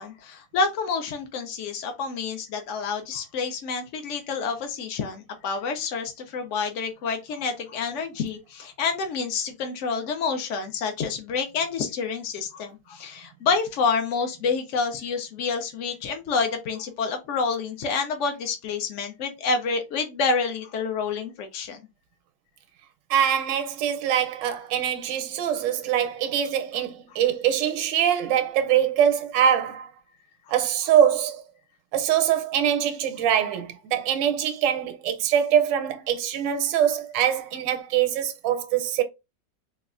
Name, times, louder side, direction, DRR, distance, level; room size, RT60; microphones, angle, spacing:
voice 1, 0.0-21.8 27.1-27.2 30.5-30.6, left 5 dB, 80° left, 0.6 m, -28 dB
voice 2, 23.1-29.9 30.5-31.4 31.9-39.0, right 9 dB, 85° right, 1.3 m, -23 dB
4.1 x 2.3 x 2.4 m
omnidirectional pair, 1.9 m